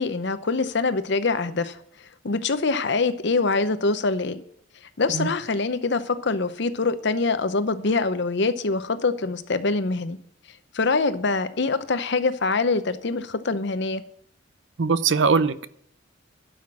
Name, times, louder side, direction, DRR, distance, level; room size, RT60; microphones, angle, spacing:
voice 1, 0.0-1.8 2.2-4.4 5.0-10.2 10.7-14.0, left 3 dB, 60° left, 0.7 m, -24 dB
voice 2, 14.8-15.7, right 5 dB, 65° right, 0.6 m, -21 dB
12.0 x 5.8 x 7.4 m
head